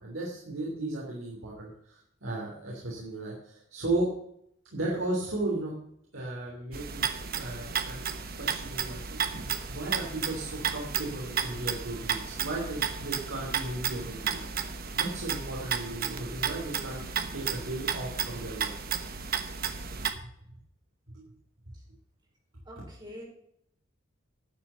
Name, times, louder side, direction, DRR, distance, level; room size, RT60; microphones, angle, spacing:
voice 1, 0.0-4.1 4.7-5.7 6.1-7.1 7.4-17.1 17.3-18.7 21.1-21.3, right 2 dB, 75° right, -4 dB, 3.3 m, -35 dB
sound 1, 6.7-20.1, right 7 dB, 50° right, 1.1 m, -33 dB
voice 2, 22.7-23.2, equal, 20° right, -3 dB, 4.4 m, -44 dB
11.5 x 7.2 x 6.9 m, 0.72 s
head